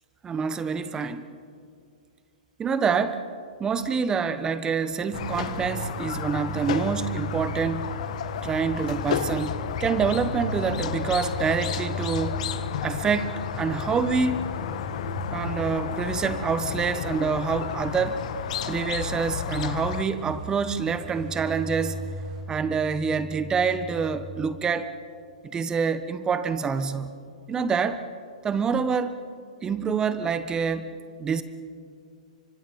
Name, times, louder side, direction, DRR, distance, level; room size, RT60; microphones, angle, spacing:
voice 1, 0.2-1.2 2.6-3.2 3.6-7.9 8.4-12.4 12.8-14.4 15.3-18.2 18.7-22.0 22.5-24.9 25.5-27.2 27.5-28.0 28.4-29.2 29.6-30.9 31.2-31.4, right 5 dB, 15° right, 12 dB, 1.3 m, -26 dB
Squeak, 5.1-20.0, left 9 dB, 60° left, 1.5 m, -32 dB
sound 1, 5.1-24.2, right 2 dB, 65° right, 7.3 m, -39 dB
sound 2, 5.7-22.4, right 3 dB, 45° right, 6.0 m, -50 dB
30.0 x 25.0 x 5.5 m, 2.3 s
hypercardioid pair, 120°, 4 cm